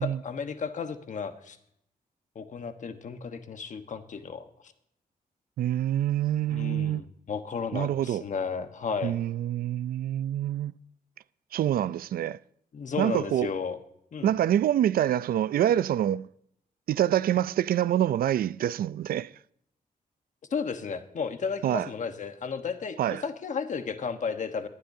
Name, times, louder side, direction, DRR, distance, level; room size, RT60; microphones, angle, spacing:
voice 1, 0.0-1.6 2.3-4.7 6.5-9.2 12.7-13.8 14.1-14.3 20.5-24.7, left 5 dB, 55° left, 1.2 m, -33 dB
voice 2, 5.6-7.0 7.7-8.2 9.0-10.7 11.5-12.4 13.0-13.5 14.2-16.3 16.9-19.3 21.6-21.9 23.0-23.2, right 11 dB, 75° right, 0.4 m, -26 dB
19.0 x 11.5 x 2.7 m
cardioid pair, 110°, 15 cm